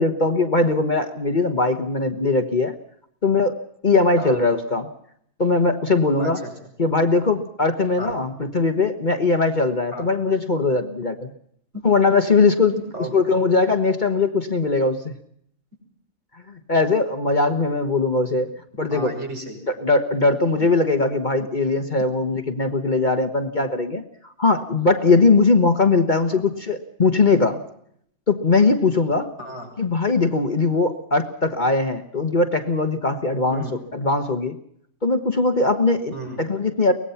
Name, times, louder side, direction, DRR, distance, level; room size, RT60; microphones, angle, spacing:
voice 1, 0.0-2.7 3.2-3.6 3.8-4.9 5.4-6.4 6.8-11.3 11.8-12.7 13.1-15.1 16.5-18.5 18.8-19.1 19.7-24.0 24.4-27.6 28.3-29.3 29.8-33.6 33.9-34.6 35.0-36.1 36.4-36.9, left 3 dB, 35° left, 7 dB, 1.4 m, -20 dB
voice 2, 6.2-6.5 8.0-8.1 9.9-10.1 12.8-13.4 18.9-19.7 26.3-26.4 29.4-29.7 33.5-33.8 36.1-36.4, right 1 dB, 55° right, 1 dB, 6.8 m, -34 dB
24.0 x 19.0 x 5.8 m, 0.69 s
omnidirectional pair, 1.4 m